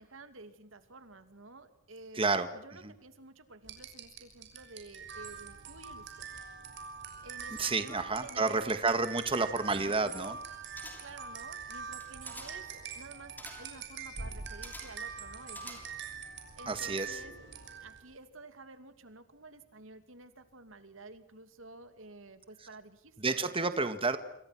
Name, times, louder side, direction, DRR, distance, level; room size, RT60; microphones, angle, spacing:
voice 1, 0.0-2.3 2.5-6.3 7.2-9.1 9.8-10.3 10.8-15.8 16.5-17.3 17.8-24.0, right 2 dB, 80° right, 10 dB, 2.7 m, -52 dB
voice 2, 2.1-2.5 2.8-2.9 7.6-10.4 16.7-17.2 23.2-24.2, right 3 dB, 30° right, 9 dB, 1.7 m, -30 dB
Music box, 3.6-18.1, right 6 dB, 65° right, 6.3 m, -44 dB
sound 1, 10.8-11.3 11.9-12.7 13.4-13.8 14.6-15.1 15.5-16.2 16.5-16.6, left 1 dB, 10° left, 6.6 m, -49 dB
27.5 x 27.0 x 6.1 m, 0.78 s
head